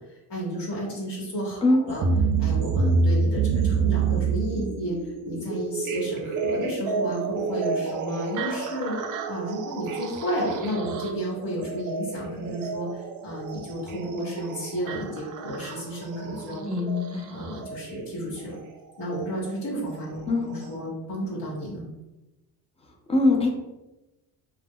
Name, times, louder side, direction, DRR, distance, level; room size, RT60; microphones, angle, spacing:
voice 1, 0.0-2.1 2.4-5.0 5.3-16.9 17.3-18.6 19.0-21.8, equal, 70° left, -5 dB, 1.1 m, -32 dB
sound 1, 1.9-17.8 19.0-19.1 19.9-20.0 20.6-20.7, right 4 dB, 50° right, 0.4 m, -28 dB
voice 2, 16.5-17.3 20.3-20.5 23.1-23.5, left 2 dB, 15° left, 2 dB, 0.4 m, -22 dB
2.2 x 2.0 x 3.6 m, 1.0 s
cardioid pair, 90°, 43 cm